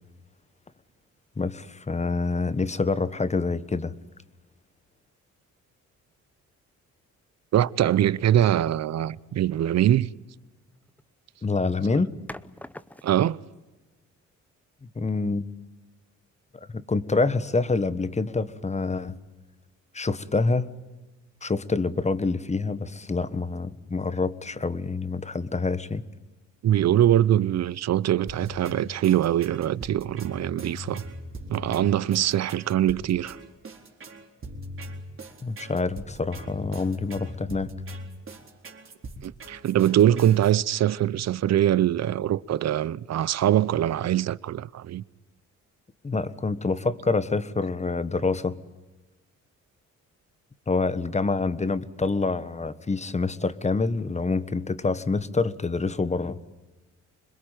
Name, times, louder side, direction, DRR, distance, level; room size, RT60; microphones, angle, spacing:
voice 1, 1.4-3.9 11.4-12.1 14.8-15.4 16.7-19.2 19.9-20.7 21.4-26.0 35.4-37.7 46.0-48.6 50.7-56.4, left 3 dB, 20° left, 1.4 m, -26 dB
voice 2, 7.5-10.1 13.0-13.4 26.6-31.0 31.5-33.4 39.2-45.0, right 11 dB, 60° right, 0.8 m, -23 dB
sound 1, 10.7-11.1 12.3-13.4, left 1 dB, 5° left, 0.9 m, -44 dB
sound 2, 28.3-40.5, equal, 45° right, 4.2 m, -40 dB
26.0 x 21.5 x 9.2 m
cardioid pair, 90°, 30 cm